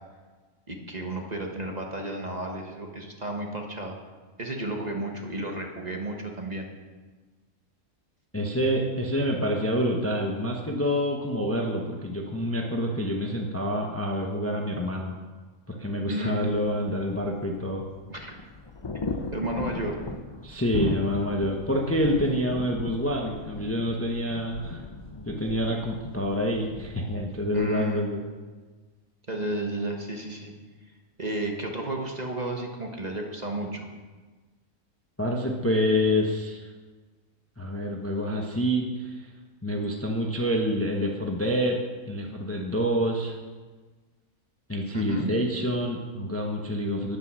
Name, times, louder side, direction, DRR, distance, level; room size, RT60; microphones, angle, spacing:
voice 1, 0.7-4.0 4.4-6.7 16.1-16.5 18.1-18.3 19.3-20.0 27.5-28.0 29.3-30.5 31.2-33.9 44.9-45.3, right 2 dB, 30° right, 2 dB, 1.3 m, -32 dB
voice 2, 8.3-15.1 15.7-17.8 20.4-24.8 25.3-28.2 35.2-36.6 37.6-39.1 39.6-41.8 42.1-43.3 44.7-47.2, equal, 10° left, 1 dB, 0.9 m, -27 dB
sound 1, 16.5-27.7, left 3 dB, 35° left, 0.4 m, -37 dB
10.0 x 9.4 x 6.2 m, 1.4 s
omnidirectional pair, 1.5 m